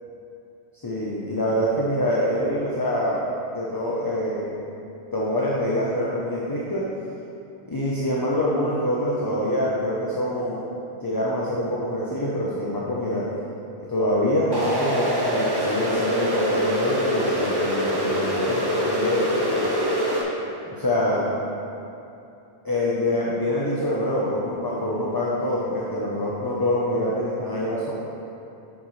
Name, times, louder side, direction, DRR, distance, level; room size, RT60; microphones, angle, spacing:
voice 1, 0.8-3.2 3.5-4.6 5.1-6.8 7.7-10.6 11.0-13.2 13.9-19.7 20.7-21.3 22.6-27.9, left 1 dB, 20° left, -6 dB, 0.8 m, -25 dB
sound 1, 14.5-20.2, equal, 25° right, 1.0 m, -24 dB
9.1 x 7.3 x 3.2 m, 2.8 s
omnidirectional pair, 1.1 m